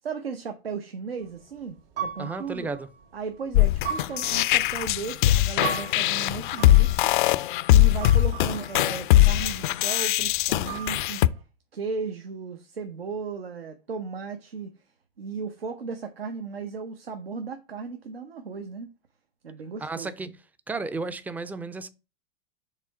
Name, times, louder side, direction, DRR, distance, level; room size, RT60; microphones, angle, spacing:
voice 1, 0.0-2.7 3.1-7.4 7.7-11.2 11.7-14.7 15.2-18.9 19.4-20.1, right 5 dB, 85° right, 0.8 m, -36 dB
sound 1, 1.2-3.5 3.8-7.3 8.0-9.2 9.6-9.8 10.4-10.5 10.6-11.4, right 7 dB, 70° right, 1.9 m, -37 dB
voice 2, 2.2-2.9 19.8-20.3 20.7-21.9, right 3 dB, 5° right, 0.4 m, -33 dB
sound 2, 3.5-11.3, left 15 dB, 60° left, 0.5 m, -21 dB
5.0 x 3.6 x 5.6 m
hypercardioid pair, 95°, 29 cm